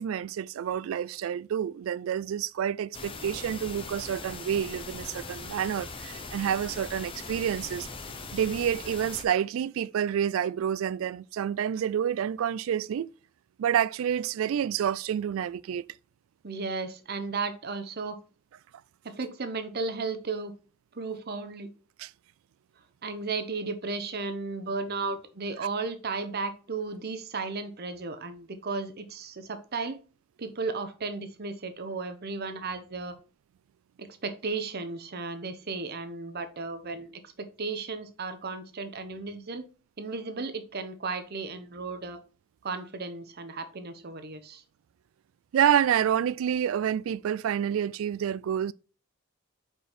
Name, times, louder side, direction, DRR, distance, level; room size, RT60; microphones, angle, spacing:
voice 1, 0.0-7.9 8.3-13.1 13.6-15.9 22.0-22.1 45.5-48.7, right 9 dB, 80° right, 0.3 m, -28 dB
sound 1, 2.9-9.2, left 3 dB, 25° left, 0.7 m, -40 dB
voice 2, 16.4-18.2 19.0-20.5 20.9-21.7 23.0-30.0 30.4-33.2 34.0-39.6 40.0-42.2 42.6-44.6, right 4 dB, 50° right, 0.8 m, -34 dB
5.0 x 4.5 x 4.3 m
head